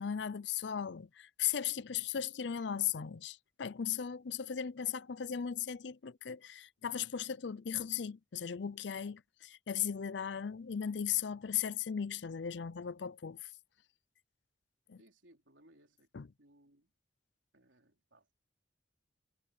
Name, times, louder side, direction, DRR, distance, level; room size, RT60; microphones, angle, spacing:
voice 1, 0.0-13.5 14.9-15.0 16.1-16.3, left 8 dB, 65° left, 0.5 m, -37 dB
voice 2, 15.0-16.1 16.4-16.9 17.5-18.3, right 1 dB, 80° right, 3.7 m, -65 dB
head